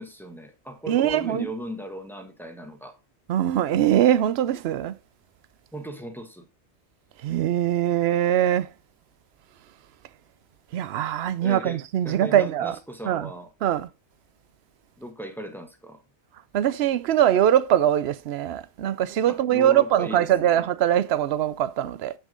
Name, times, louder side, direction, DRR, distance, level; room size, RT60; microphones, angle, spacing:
voice 1, 0.0-3.0 5.7-6.5 11.4-13.5 15.0-16.0 19.3-20.7, equal, ahead, 1.2 m, -37 dB
voice 2, 0.9-1.5 3.3-4.9 7.2-8.7 10.7-12.8 13.1-13.3 13.6-13.9 16.5-22.1, right 11 dB, 70° right, 0.8 m, -22 dB
7.4 x 6.3 x 3.8 m
omnidirectional pair, 1.1 m